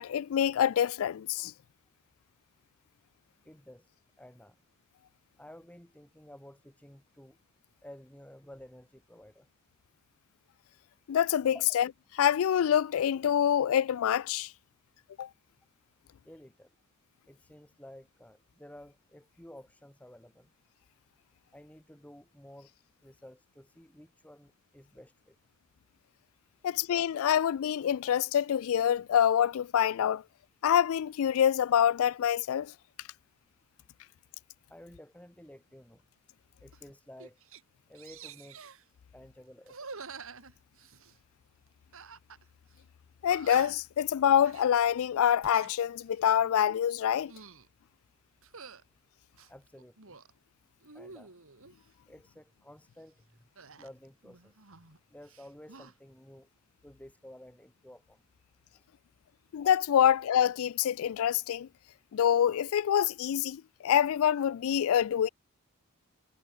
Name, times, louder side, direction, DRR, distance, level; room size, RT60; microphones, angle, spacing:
voice 1, 0.0-1.5 11.1-11.9 12.2-14.5 15.2-15.3 26.6-30.2 30.6-32.7 43.2-47.3 59.5-61.7 62.1-65.3, left 9 dB, 70° left, 0.3 m, -26 dB
voice 2, 3.5-3.9 4.2-4.6 5.4-7.4 7.8-9.5 11.5-11.6 16.2-16.7 17.3-20.5 21.5-22.7 23.0-25.4 26.6-26.7 34.7-36.0 36.6-37.4 37.9-38.6 39.1-39.9 41.0-41.2 48.3-48.4 49.5-50.2 50.9-51.3 52.1-53.5 53.8-54.8 55.1-56.5 56.8-58.3 58.7-58.9 60.0-60.1, left 1 dB, 5° left, 3.9 m, -52 dB
sound 1, 36.7-36.9 37.2-37.6 37.9-38.8 39.6-41.2 41.9-42.4 42.7-42.8 43.3-43.9 44.4-44.7 45.2-45.7 46.2-46.4 47.1-47.7 48.4-48.8 49.3-50.3 50.8-51.8 53.6-55.0 55.2-55.9, right 5 dB, 65° right, 2.8 m, -48 dB
head